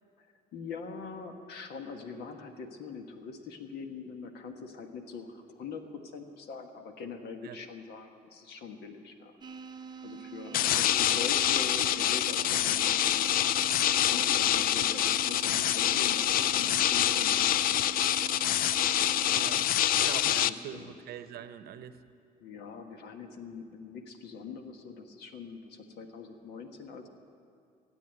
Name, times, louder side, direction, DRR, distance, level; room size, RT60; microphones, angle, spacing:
voice 1, 0.5-5.8 6.1-9.3 10.0-13.3 14.0-17.9 18.2-18.6 20.2-20.9 22.4-27.1, left 5 dB, 75° left, 6 dB, 1.5 m, -43 dB
sound 1, 9.4-19.7, right 6 dB, 25° right, 0.7 m, -45 dB
sound 2, 10.5-20.5, left 12 dB, 60° left, 0.4 m, -26 dB
voice 2, 19.3-19.7 20.0-22.0, right 9 dB, 70° right, 12 dB, 0.8 m, -42 dB
15.5 x 8.7 x 9.0 m, 2.4 s
cardioid pair, 110°, 17 cm